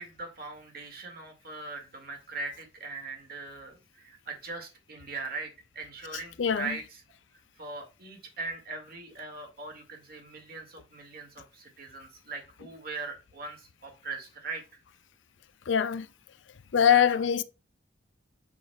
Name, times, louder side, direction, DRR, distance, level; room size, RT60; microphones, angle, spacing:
voice 1, 0.0-7.0 7.6-14.6 16.8-17.2, right 3 dB, 55° right, 1.9 m, -40 dB
voice 2, 6.4-6.7 15.7-16.1 16.7-17.4, left 8 dB, 70° left, 0.5 m, -23 dB
7.2 x 6.2 x 2.2 m
head